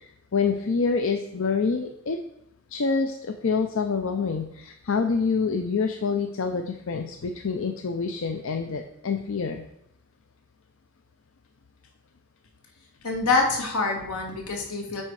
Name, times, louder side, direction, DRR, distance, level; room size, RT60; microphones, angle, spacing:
voice 1, 0.0-2.2 2.7-9.6, left 5 dB, 60° left, 6 dB, 0.5 m, -27 dB
voice 2, 13.0-15.0, left 3 dB, 80° left, 1 dB, 1.8 m, -25 dB
8.7 x 4.4 x 4.7 m, 0.79 s
head